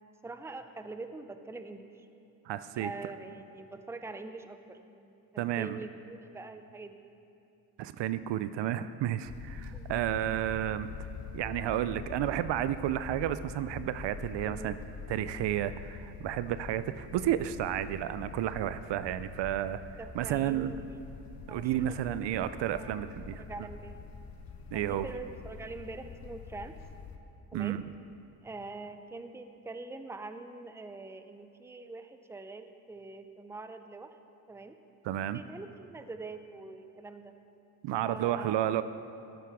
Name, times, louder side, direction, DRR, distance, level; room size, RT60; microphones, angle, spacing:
voice 1, 0.2-2.1 2.8-7.1 9.7-10.0 14.4-14.8 20.0-21.0 21.5-22.2 22.7-23.0 23.4-24.0 24.7-26.7 27.5-27.8 28.4-34.1 34.5-34.8 35.3-37.3 38.0-38.6, right 3 dB, 5° right, 9 dB, 0.6 m, -44 dB
voice 2, 2.5-2.9 5.4-5.8 7.8-10.9 11.3-14.7 15.1-19.8 20.1-20.7 21.5-23.4 24.7-25.1 27.5-27.8 35.0-35.4 37.8-38.8, right 12 dB, 65° right, 13 dB, 0.5 m, -31 dB
sound 1, 9.2-27.2, left 5 dB, 50° left, 1.0 m, -45 dB
14.5 x 9.1 x 3.6 m, 2.8 s
supercardioid pair, 55°, 47 cm